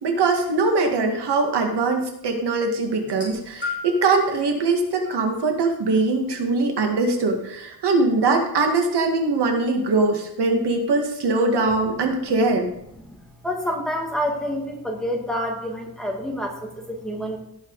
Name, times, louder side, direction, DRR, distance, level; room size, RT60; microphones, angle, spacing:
voice 1, 0.0-12.7, right 3 dB, 90° right, 3 dB, 2.1 m, -22 dB
sound 1, 3.0-4.2 5.0-5.2 6.3-6.4, left 4 dB, 25° left, 4.1 m, -33 dB
voice 2, 13.4-17.4, equal, ahead, 0 dB, 2.1 m, -28 dB
17.0 x 6.1 x 4.8 m, 0.77 s
wide cardioid pair, 140°, 39 cm